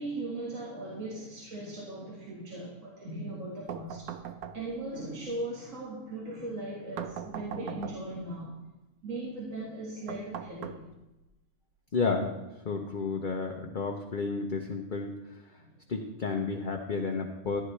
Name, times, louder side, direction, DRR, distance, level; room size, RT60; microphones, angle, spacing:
voice 1, 0.0-4.1 4.5-8.6 9.0-10.9 15.6-15.8, right 2 dB, 55° right, -5 dB, 2.2 m, -38 dB
sound 1, 3.7-5.0 7.0-8.3 10.1-11.3, right 8 dB, 75° right, 1.2 m, -40 dB
voice 2, 11.9-12.3 12.6-15.4 15.9-17.6, left 4 dB, 40° left, 2 dB, 0.8 m, -31 dB
14.0 x 9.9 x 3.3 m, 1.0 s
omnidirectional pair, 1.6 m